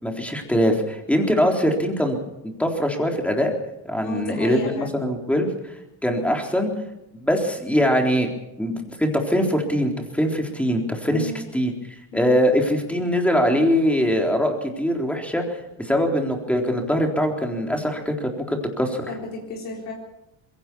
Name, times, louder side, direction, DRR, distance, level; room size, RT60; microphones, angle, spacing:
voice 1, 0.0-2.2 2.6-3.5 3.8-5.7 6.0-6.7 7.1-8.3 8.6-11.7 12.1-19.1, equal, 5° left, 2 dB, 3.8 m, -22 dB
voice 2, 4.0-4.9 11.1-11.4 12.1-12.3 19.1-19.9, left 3 dB, 55° left, -1 dB, 4.3 m, -32 dB
22.0 x 17.0 x 7.0 m, 0.91 s
cardioid pair, 125°, 38 cm